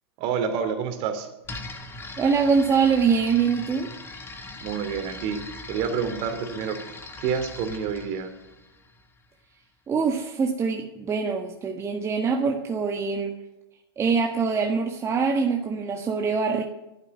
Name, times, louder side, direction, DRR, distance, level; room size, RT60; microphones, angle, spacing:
voice 1, 0.2-1.3 4.6-6.8 7.2-8.3, right 6 dB, 45° right, 7 dB, 2.9 m, -28 dB
sound 1, 1.4-9.3, left 2 dB, 15° left, 2.3 m, -40 dB
voice 2, 2.2-3.9 9.9-13.3 14.0-16.6, right 5 dB, 20° right, 2 dB, 1.5 m, -24 dB
11.5 x 10.0 x 9.5 m, 0.94 s
hypercardioid pair, 110°, 13 cm